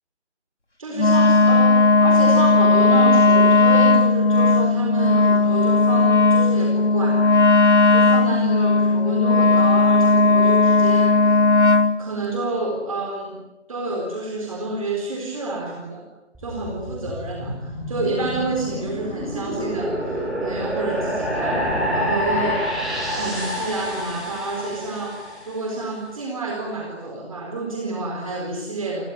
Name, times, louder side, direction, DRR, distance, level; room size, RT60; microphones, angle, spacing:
voice 1, 0.8-7.3 7.9-11.4 12.0-13.4 13.7-16.1 16.4-22.7 23.1-29.0, right 2 dB, 30° right, 0 dB, 4.3 m, -28 dB
Wind instrument woodwind instrument, 1.0-12.0, left 3 dB, 80° left, 3.0 m, -16 dB
sound 1, 16.3-25.7, equal, ahead, 1.3 m, -28 dB
29.5 x 25.0 x 7.2 m, 1.0 s
figure-of-eight pair, 160°, 35 cm